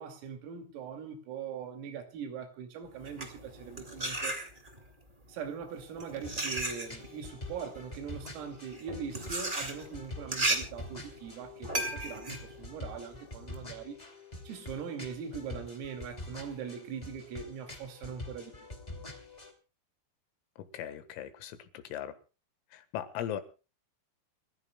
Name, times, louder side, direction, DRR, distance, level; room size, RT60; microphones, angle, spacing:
voice 1, 0.0-4.4 5.3-14.0 14.4-18.7, right 7 dB, 90° right, 5.2 m, -41 dB
sound 1, 2.9-4.9 5.7-13.6, right 2 dB, 35° right, 0.7 m, -35 dB
sound 2, 6.2-19.5, left 2 dB, 20° left, 1.0 m, -46 dB
voice 2, 20.6-22.1 22.7-23.4, left 10 dB, 85° left, 4.2 m, -38 dB
29.0 x 15.0 x 2.3 m
omnidirectional pair, 5.9 m